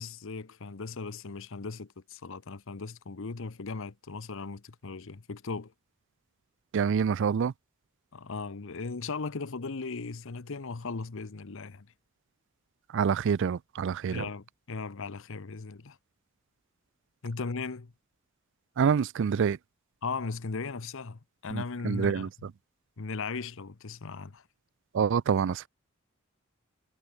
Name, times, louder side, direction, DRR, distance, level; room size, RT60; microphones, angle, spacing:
voice 1, 0.0-5.7 8.1-11.9 14.1-16.0 17.2-17.9 20.0-22.3 23.0-24.4, left 4 dB, 65° left, 0.9 m, -37 dB
voice 2, 6.7-7.5 12.9-14.3 18.8-19.6 21.5-22.3 24.9-25.7, right 6 dB, 60° right, 0.4 m, -26 dB
head